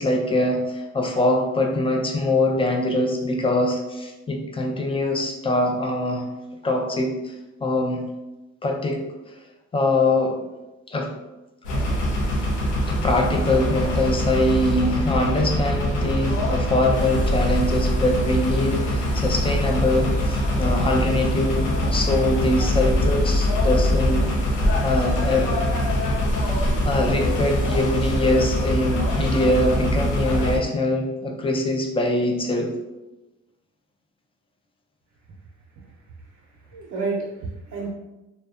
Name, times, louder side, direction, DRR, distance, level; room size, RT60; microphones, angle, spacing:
voice 1, 0.0-6.3 6.6-7.3 7.6-8.1 8.6-9.0 9.7-10.4 10.9-11.1 12.9-24.2 24.8-25.5 26.8-32.7, left 1 dB, 20° left, 2 dB, 0.4 m, -23 dB
sound 1, 11.6-30.6, left 1 dB, 90° left, 0.6 m, -23 dB
voice 2, 36.7-37.9, right 3 dB, 70° right, -3 dB, 0.5 m, -30 dB
2.7 x 2.1 x 2.3 m, 1.0 s
cardioid pair, 90°, 30 cm